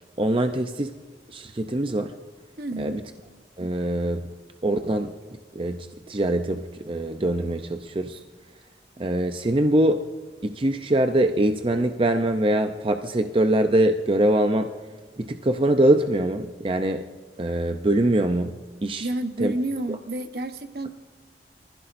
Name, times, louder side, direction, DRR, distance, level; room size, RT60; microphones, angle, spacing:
voice 1, 0.2-0.9 1.3-2.1 2.8-3.0 3.6-4.3 4.6-5.1 5.5-8.2 9.0-10.0 10.4-14.7 15.2-17.1 17.4-18.5 18.8-19.1 19.4-19.5, right 1 dB, 30° right, 7 dB, 0.6 m, -23 dB
voice 2, 2.6-3.0 19.0-20.9, right 1 dB, 60° right, 8 dB, 1.0 m, -29 dB
24.0 x 15.5 x 2.6 m, 1.4 s
head